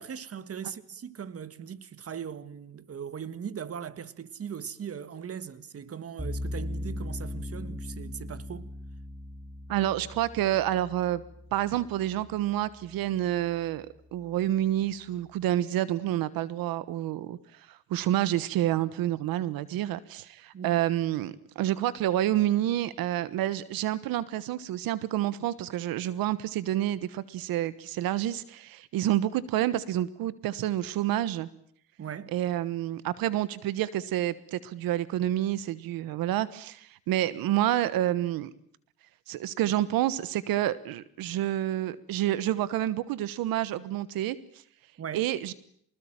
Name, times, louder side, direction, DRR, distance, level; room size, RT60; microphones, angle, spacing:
voice 1, 0.0-8.7 20.5-20.8 32.0-32.3 45.0-45.3, right 8 dB, 45° right, 1.7 m, -39 dB
sound 1, 6.2-13.3, left 1 dB, 5° right, 3.0 m, -39 dB
voice 2, 9.7-11.2 11.5-17.4 17.7-31.5 32.3-38.5 39.3-44.4 45.1-45.5, right 13 dB, 85° right, 1.3 m, -28 dB
25.0 x 20.5 x 8.9 m
cardioid pair, 90°, 34 cm